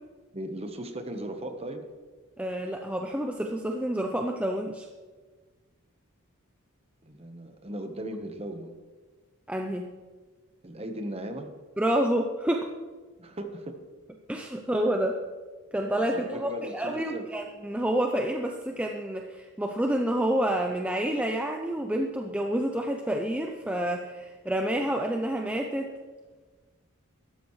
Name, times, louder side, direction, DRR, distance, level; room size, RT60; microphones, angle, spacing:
voice 1, 0.3-1.8 7.0-8.7 10.6-11.5 13.2-13.8 14.9-15.1 15.9-17.3, right 1 dB, 30° right, 6 dB, 1.1 m, -37 dB
voice 2, 2.4-4.9 9.5-9.9 11.8-12.7 14.3-15.1 15.7-26.0, right 1 dB, 5° right, 2 dB, 0.5 m, -28 dB
15.0 x 12.5 x 3.2 m, 1.4 s
head